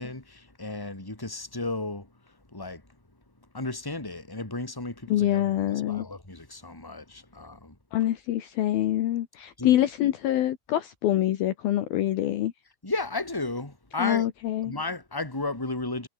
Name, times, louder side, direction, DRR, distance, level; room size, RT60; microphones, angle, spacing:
voice 1, 0.0-2.1 2.5-2.8 3.5-7.8 9.6-9.7 12.8-14.3 14.6-16.1, left 2 dB, 5° left, 3.7 m, -34 dB
voice 2, 5.1-6.1 7.9-12.5 14.0-14.7, left 13 dB, 70° left, 2.8 m, -25 dB
omnidirectional pair, 5.0 m